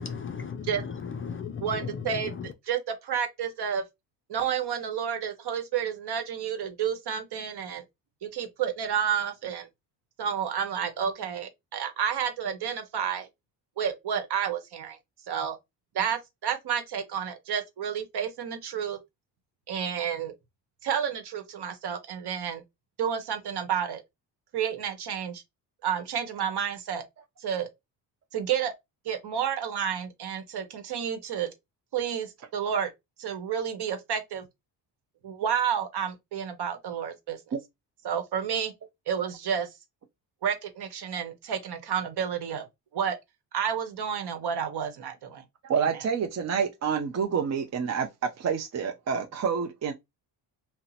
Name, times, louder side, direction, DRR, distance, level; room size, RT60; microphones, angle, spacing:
voice 1, 0.0-2.5, left 6 dB, 30° left, 0.4 m, -36 dB
voice 2, 1.6-2.3 2.7-3.8 4.3-7.8 8.2-9.7 10.2-13.3 13.8-15.0 15.3-15.6 15.9-19.0 19.7-20.3 20.8-22.6 23.0-24.0 24.5-25.4 25.8-27.0 27.4-27.7 28.3-28.7 29.0-31.5 31.9-32.9 33.2-34.5 35.2-37.4 38.0-38.7 39.1-39.7 40.4-42.6 42.9-43.2 43.5-45.4 45.8-46.0, right 8 dB, 60° right, 1.0 m, -30 dB
voice 3, 45.6-49.9, right 6 dB, 40° right, 0.5 m, -28 dB
2.8 x 2.1 x 3.9 m
cardioid pair, 75°, 44 cm